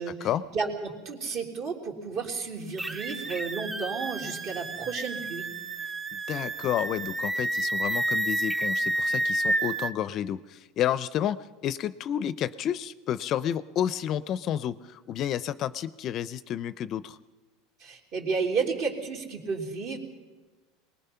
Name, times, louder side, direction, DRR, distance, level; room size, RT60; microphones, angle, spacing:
voice 1, 0.5-5.5 17.8-20.0, right 5 dB, 50° right, 2 dB, 3.4 m, -32 dB
sound 1, 2.8-9.9, right 1 dB, 15° right, 0.7 m, -30 dB
voice 2, 6.1-17.2, left 10 dB, 40° left, 16 dB, 0.5 m, -30 dB
23.0 x 20.0 x 5.7 m, 1.3 s
supercardioid pair, 135°, 0 cm